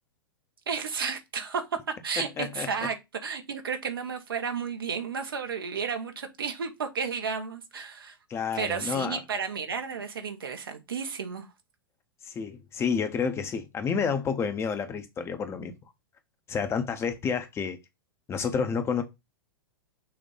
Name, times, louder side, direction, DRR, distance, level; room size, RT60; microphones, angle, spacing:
voice 1, 0.7-1.6 2.0-3.0 3.2-8.1 8.5-11.5, right 6 dB, 70° right, 1.2 m, -32 dB
voice 2, 2.2-2.7 8.3-9.2 12.3-15.7 16.5-17.8 18.3-19.0, left 6 dB, 20° left, 0.9 m, -29 dB
6.4 x 2.6 x 5.5 m
figure-of-eight pair, 100°, 12 cm